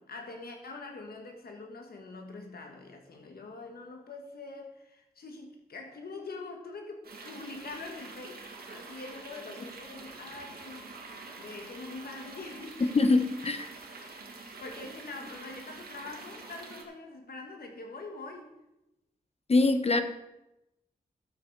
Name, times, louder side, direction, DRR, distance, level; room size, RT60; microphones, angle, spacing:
voice 1, 0.0-8.4 8.7-11.0 11.4-12.9 14.3-18.5, left 3 dB, 85° left, 3 dB, 1.5 m, -44 dB
sound 1, 7.0-16.8, right 3 dB, 80° right, 2.0 m, -46 dB
voice 2, 12.9-13.7 19.5-20.0, left 3 dB, 40° left, 9 dB, 1.1 m, -23 dB
12.0 x 7.7 x 4.7 m, 0.92 s
cardioid pair, 70°, 16 cm